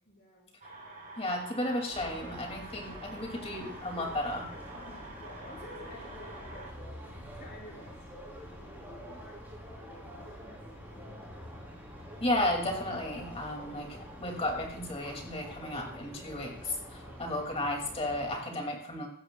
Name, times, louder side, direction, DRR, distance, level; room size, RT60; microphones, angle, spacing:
voice 1, 0.1-0.5 4.7-11.2 17.0-17.4, left 1 dB, 45° left, -5 dB, 6.0 m, -52 dB
sound 1, 0.6-6.7, right 2 dB, 40° right, 5.3 m, -48 dB
voice 2, 1.2-4.5 12.2-19.1, left 1 dB, 25° left, 1 dB, 2.7 m, -33 dB
sound 2, 1.9-18.4, equal, 10° right, 3.6 m, -46 dB
16.5 x 12.5 x 2.4 m, 0.66 s
head